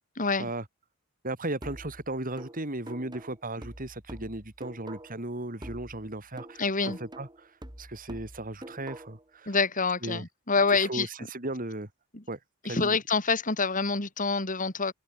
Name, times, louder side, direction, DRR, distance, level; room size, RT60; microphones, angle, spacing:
voice 1, 1.2-9.5 10.0-10.2 10.7-11.9 12.3-13.0, right 2 dB, 40° right, 3.5 m, -36 dB
sound 1, 1.6-5.3 5.6-9.3, right 1 dB, 20° right, 4.3 m, -46 dB
voice 2, 6.6-7.0 9.5-11.1 12.1-12.2 12.6-14.9, left 4 dB, 35° left, 2.8 m, -26 dB
open air
head